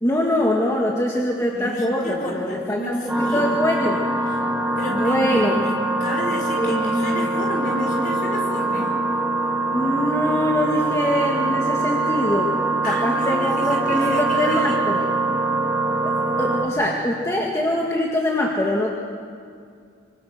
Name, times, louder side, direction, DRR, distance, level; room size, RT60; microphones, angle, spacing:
voice 1, 0.0-3.0 3.3-4.0 4.9-5.6 6.6-7.2 9.7-12.5 12.9-15.0 16.0-16.1 16.4-18.9, left 1 dB, 15° left, -2 dB, 1.9 m, -23 dB
voice 2, 1.5-3.5 4.3-4.4 4.8-5.7 6.0-8.9 12.8-15.2, equal, 45° left, 0 dB, 5.6 m, -31 dB
sound 1, 3.1-16.7, right 2 dB, 5° right, 2.2 m, -23 dB
26.0 x 25.5 x 6.6 m, 2.2 s
head